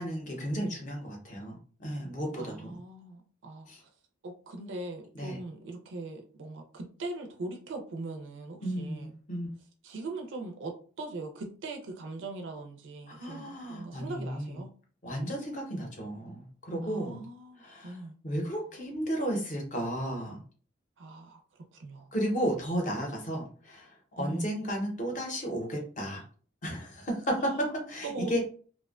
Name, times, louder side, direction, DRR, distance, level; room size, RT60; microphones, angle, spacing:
voice 1, 0.0-2.8 3.7-3.8 5.2-5.4 8.6-9.5 13.1-14.6 15.0-17.2 17.6-17.9 18.2-20.4 22.1-23.9 24.2-26.2 26.6-28.4, equal, 40° left, 1 dB, 0.6 m, -33 dB
voice 2, 2.3-3.9 4.2-9.1 9.8-14.7 16.8-18.1 21.0-21.4 21.7-22.1 24.2-24.5 27.4-27.6 28.0-28.4, right 2 dB, 70° right, 4 dB, 0.4 m, -40 dB
2.5 x 2.1 x 2.3 m, 0.41 s
head